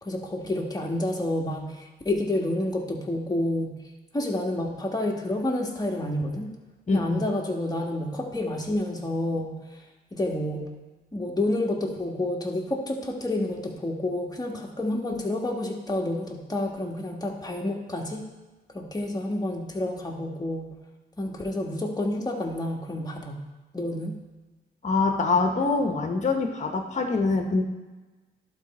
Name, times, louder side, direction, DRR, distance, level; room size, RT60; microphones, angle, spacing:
voice 1, 0.0-3.7 4.1-6.5 6.9-9.6 10.1-10.7 11.1-18.2 18.7-20.7 21.2-23.4 23.7-24.2, left 1 dB, 20° left, 0 dB, 1.6 m, -29 dB
voice 2, 6.9-7.3 24.8-27.6, left 3 dB, 40° left, 3 dB, 1.2 m, -24 dB
11.5 x 4.3 x 4.3 m, 1.2 s
cardioid pair, 70°, 19 cm